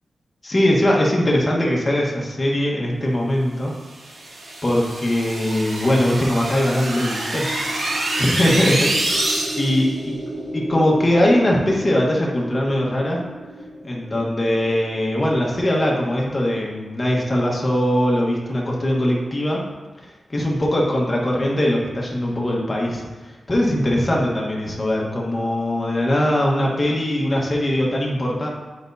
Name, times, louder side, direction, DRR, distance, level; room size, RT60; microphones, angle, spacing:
voice 1, 0.4-3.7 4.6-7.5 7.8-9.8 10.5-13.2 13.8-19.6 20.3-23.1 23.5-28.5, left 1 dB, 30° left, -3 dB, 1.4 m, -21 dB
sound 1, 3.9-9.9, right 1 dB, 80° right, 1.4 m, -26 dB
sound 2, 7.1-15.3, right 1 dB, 40° right, 1.8 m, -35 dB
8.7 x 5.3 x 2.8 m, 1.2 s
wide cardioid pair, 110°, 0 cm